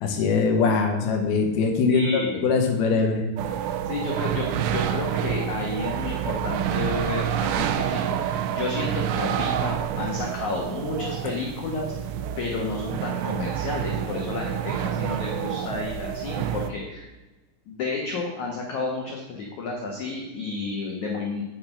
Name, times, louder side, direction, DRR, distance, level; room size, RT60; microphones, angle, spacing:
voice 1, 0.0-3.2, left 4 dB, 70° left, 3 dB, 2.5 m, -22 dB
voice 2, 1.9-2.5 3.8-11.9 12.4-17.1 17.7-21.4, left 3 dB, 85° left, -1 dB, 1.6 m, -31 dB
sound 1, 3.4-16.7, right 10 dB, 85° right, 3.0 m, -28 dB
9.4 x 6.7 x 5.9 m, 1.1 s
omnidirectional pair, 5.6 m